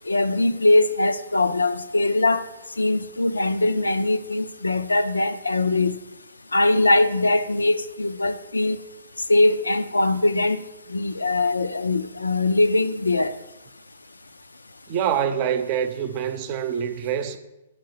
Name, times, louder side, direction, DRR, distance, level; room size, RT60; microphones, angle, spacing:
voice 1, 0.1-2.4 2.8-6.0 6.5-8.8 9.3-10.6 10.9-13.3, left 2 dB, 85° left, 0.5 m, -21 dB
voice 2, 14.9-17.4, right 8 dB, 40° right, 0.7 m, -25 dB
10.0 x 4.6 x 4.8 m
figure-of-eight pair, 120°, 0 cm